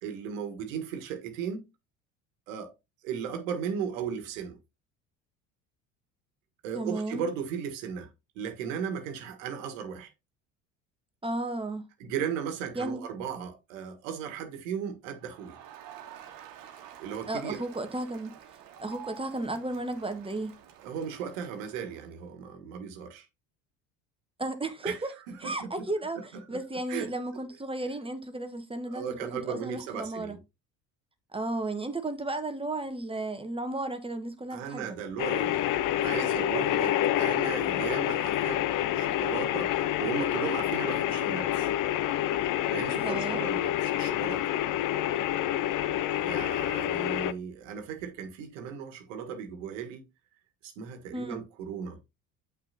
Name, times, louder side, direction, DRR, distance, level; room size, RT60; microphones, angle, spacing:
voice 1, 0.0-1.7 2.5-2.7 3.0-4.6 6.6-8.1 8.3-10.1 12.0-15.6 17.0-17.6 20.8-23.3 24.8-25.0 25.3-25.7 26.5-26.6 26.9-27.1 28.9-30.4 34.5-38.6 38.9-41.7 42.7-44.5 46.2-50.0 50.6-52.0, right 7 dB, 80° right, 1.6 m, -36 dB
voice 2, 6.7-7.2 11.2-11.9 12.7-13.0 17.3-18.3 18.8-20.5 24.4-25.1 25.4-30.4 31.3-35.0 42.9-43.4 51.1-51.4, right 2 dB, 15° right, 1.3 m, -34 dB
Crowd, 15.2-22.2, right 10 dB, 55° right, 1.5 m, -49 dB
sound 1, 35.2-47.3, left 12 dB, 55° left, 0.6 m, -28 dB
8.7 x 5.9 x 2.7 m
hypercardioid pair, 70°, 38 cm